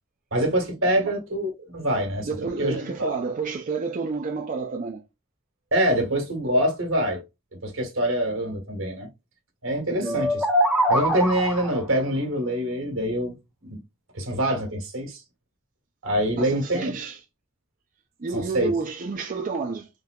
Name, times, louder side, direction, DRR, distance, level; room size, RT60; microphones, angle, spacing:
voice 1, 0.3-2.3 2.6-3.2 5.7-7.2 7.6-9.1 9.6-10.4 10.9-13.3 13.6-13.8 14.1-15.2 16.0-16.9 18.3-18.7, right 1 dB, 85° right, 1.4 m, -25 dB
voice 2, 2.2-5.0 9.9-10.3 16.4-17.2 18.2-19.9, right 4 dB, 40° right, 0.5 m, -30 dB
sound 1, 10.0-11.9, equal, ahead, 0.7 m, -23 dB
3.6 x 2.8 x 2.3 m
head